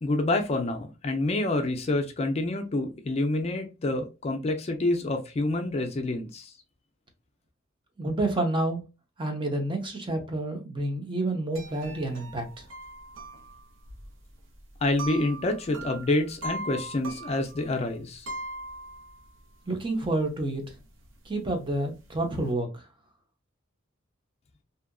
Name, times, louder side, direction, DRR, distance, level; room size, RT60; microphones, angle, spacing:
voice 1, 0.0-6.5 14.8-18.3, left 2 dB, 35° left, 0.4 m, -27 dB
voice 2, 8.0-8.8 9.2-12.7 19.7-20.6 21.3-22.8, right 2 dB, 25° right, 0.6 m, -29 dB
sound 1, 11.5-19.4 19.9-20.0 20.2-20.8 21.0-22.5, right 2 dB, 75° right, 0.7 m, -40 dB
2.7 x 2.4 x 2.2 m
head